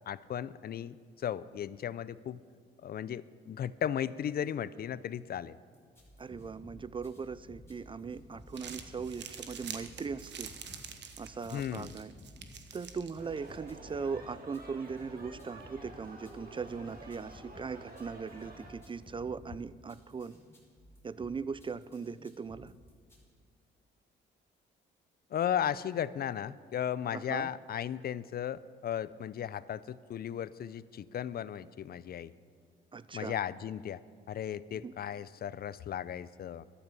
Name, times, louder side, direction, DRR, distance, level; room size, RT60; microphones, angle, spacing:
voice 1, 0.1-2.4 2.8-5.6 11.5-11.9 25.3-32.3 33.1-34.0 34.3-36.6, left 9 dB, 50° left, 18 dB, 0.5 m, -36 dB
sound 1, 5.7-23.2, left 1 dB, 10° left, 4.5 m, -54 dB
voice 2, 6.2-10.5 11.2-12.1 12.7-20.4 21.0-22.7 27.1-27.5 32.9-33.3 34.8-34.9, right 5 dB, 25° right, 17 dB, 0.4 m, -39 dB
Crumpling crinkling, 8.3-13.6, right 7 dB, 60° right, 1.3 m, -47 dB
sound 2, 13.2-18.7, right 2 dB, 45° right, 2.8 m, -51 dB
13.5 x 12.5 x 5.4 m, 2.1 s
cardioid pair, 90°, 20 cm